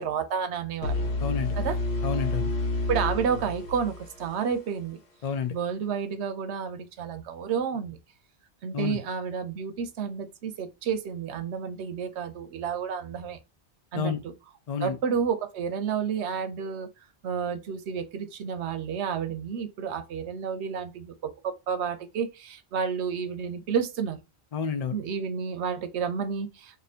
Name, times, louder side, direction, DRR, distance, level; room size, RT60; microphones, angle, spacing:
voice 1, 0.0-1.0 1.6-1.8 2.9-5.0 5.5-8.0 8.6-13.4 13.9-14.2 14.8-16.9 17.2-24.2 24.9-26.8, right 7 dB, 80° right, 0.9 m, -30 dB
sound 1, 0.8-4.7, left 2 dB, 70° left, 1.1 m, -29 dB
voice 2, 1.2-1.6 2.0-2.5 5.2-5.5 8.7-9.0 13.9-14.2 14.7-15.0 24.5-25.0, left 6 dB, 55° left, 0.4 m, -29 dB
2.7 x 2.6 x 4.1 m
omnidirectional pair, 1.1 m